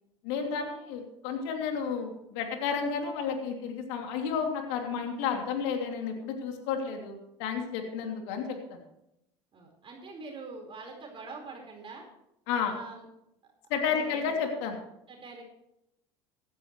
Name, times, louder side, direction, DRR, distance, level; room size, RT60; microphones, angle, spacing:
voice 1, 0.2-8.4 8.7-8.8 12.5-12.7 13.7-14.8, left 6 dB, 70° left, 3 dB, 2.9 m, -31 dB
voice 2, 9.5-12.1 12.7-13.0 13.9-14.3 15.1-15.4, right 3 dB, 35° right, 1 dB, 4.6 m, -44 dB
16.5 x 12.5 x 3.2 m, 0.81 s
hypercardioid pair, 75°, 15 cm